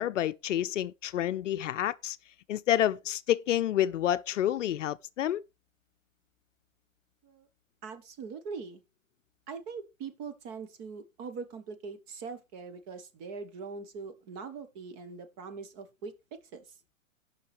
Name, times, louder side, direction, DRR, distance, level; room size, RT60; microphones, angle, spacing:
voice 1, 0.0-2.2 2.5-5.4, left 11 dB, 65° left, 0.6 m, -29 dB
voice 2, 7.8-8.8 9.5-16.6, right 5 dB, 30° right, 1.1 m, -42 dB
16.5 x 5.7 x 3.2 m
hypercardioid pair, 135°, 40 cm